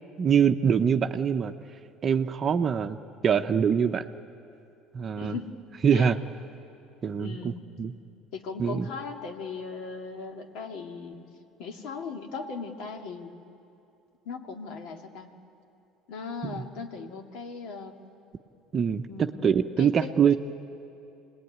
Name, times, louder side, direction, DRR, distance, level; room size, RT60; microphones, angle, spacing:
voice 1, 0.2-1.5 2.0-3.0 3.2-4.0 4.9-5.4 5.8-6.2 7.0-7.5 7.8-7.9 8.6-8.9 16.4-16.6 18.7-19.0 19.4-20.3, right 7 dB, 35° right, 7 dB, 0.7 m, -23 dB
voice 2, 5.2-5.6 5.9-6.1 7.2-7.6 8.3-11.2 11.6-13.3 14.2-15.3 16.1-18.0 19.1-20.4, left 4 dB, 70° left, 4 dB, 2.2 m, -38 dB
26.5 x 20.0 x 9.4 m, 2.7 s
cardioid pair, 115°, 0 cm